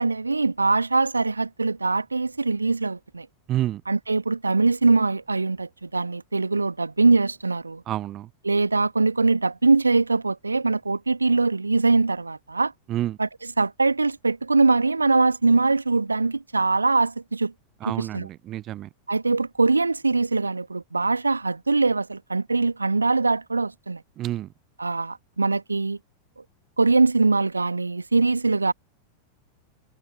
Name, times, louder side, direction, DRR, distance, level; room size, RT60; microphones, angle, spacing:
voice 1, 0.0-3.3 3.9-7.8 8.4-12.7 13.2-17.5 17.9-18.3 19.1-24.0 24.8-26.0 26.8-28.7, right 3 dB, 80° right, 1.8 m, -22 dB
voice 2, 3.5-3.8 7.9-8.3 12.9-13.2 17.8-18.9 24.2-24.5, right 13 dB, 35° right, 0.6 m, -29 dB
figure-of-eight pair, 90°, 0 cm